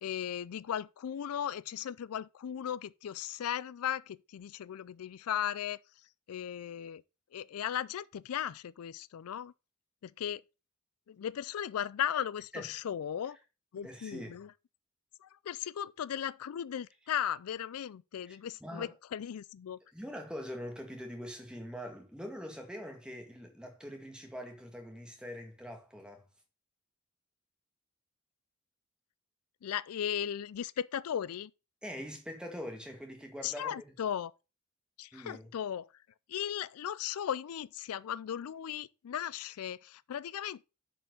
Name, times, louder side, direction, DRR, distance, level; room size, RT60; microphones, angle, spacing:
voice 1, 0.0-5.8 6.3-7.0 7.3-9.5 10.0-10.4 11.1-13.4 13.7-14.5 15.2-19.8 29.6-31.5 33.4-34.3 35.0-35.9 36.3-40.6, left 9 dB, 90° left, 0.4 m, -37 dB
voice 2, 13.8-14.4 18.2-18.9 19.9-26.3 31.8-33.8 35.1-35.5, equal, 5° right, 1.9 m, -43 dB
7.2 x 5.1 x 6.5 m
head